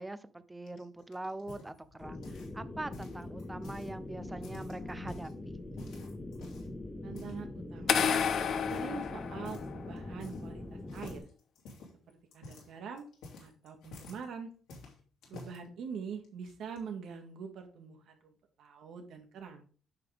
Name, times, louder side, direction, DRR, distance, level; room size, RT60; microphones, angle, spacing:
voice 1, 0.0-5.6, right 2 dB, 15° right, 13 dB, 0.8 m, -43 dB
sound 1, 0.7-2.6 2.9-3.9 4.3-5.3 5.8-6.8 7.1-7.4 7.8-8.2 8.7-9.0 9.4-9.7 10.0-10.6 10.9-14.2 14.7-15.6 16.2-16.8, left 2 dB, 90° left, 2.9 m, -50 dB
sound 2, 2.0-11.2, left 2 dB, 25° left, 1.5 m, -43 dB
voice 2, 7.0-8.2 8.7-11.2 12.1-13.1 13.4-14.5 15.3-18.3 18.6-19.6, right 6 dB, 75° right, 4 dB, 2.0 m, -44 dB
sound 3, 7.9-10.0, left 7 dB, 65° left, 0.8 m, -30 dB
9.1 x 5.8 x 3.6 m, 0.39 s
cardioid pair, 90°, 0 cm